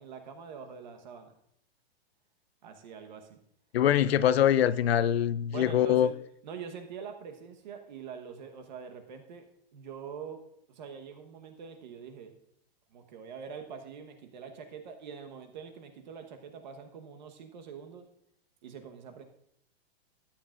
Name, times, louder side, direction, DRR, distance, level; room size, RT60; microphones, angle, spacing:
voice 1, 0.0-1.3 2.6-3.4 5.5-6.1 6.4-10.4 10.7-12.3 12.9-18.1 18.6-19.2, right 6 dB, 45° right, 1.1 m, -44 dB
voice 2, 3.7-6.1, left 10 dB, 75° left, 0.6 m, -24 dB
14.0 x 10.0 x 2.5 m
hypercardioid pair, 170°, 31 cm